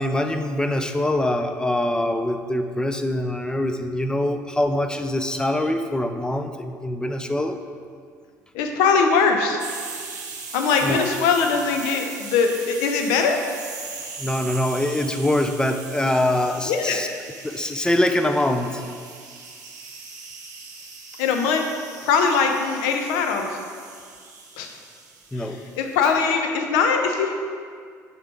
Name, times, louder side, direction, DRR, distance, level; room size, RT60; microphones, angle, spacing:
voice 1, 0.0-7.6 10.8-11.0 14.2-17.1 17.4-18.8 25.3-25.6, left 1 dB, 10° left, 7 dB, 0.5 m, -24 dB
voice 2, 8.5-9.6 10.5-13.4 16.7-17.0 21.2-21.6 22.0-23.6 24.6-24.7 25.3-27.3, left 5 dB, 65° left, 4 dB, 0.7 m, -21 dB
sound 1, 9.6-26.3, right 4 dB, 75° right, 0.8 m, -39 dB
6.7 x 4.4 x 5.0 m, 2.1 s
figure-of-eight pair, 60°, 9 cm